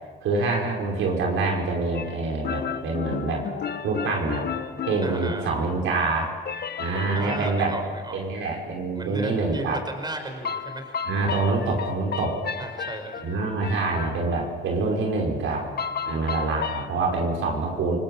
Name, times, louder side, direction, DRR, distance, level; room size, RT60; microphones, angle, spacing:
voice 1, 0.2-3.4 3.8-4.5 4.9-6.3 6.8-7.7 8.1-9.8 11.1-12.4 13.2-15.7 16.1-18.0, right 3 dB, 75° right, 0 dB, 5.5 m, -26 dB
sound 1, 1.9-5.8 6.4-7.6 10.4-14.5 15.8-16.9, left 7 dB, 55° left, 1.2 m, -33 dB
voice 2, 5.0-5.5 7.1-8.2 9.0-11.0 12.6-13.2, right 1 dB, 20° right, 4 dB, 5.1 m, -35 dB
28.5 x 20.0 x 7.3 m, 1.5 s
cardioid pair, 90°, 20 cm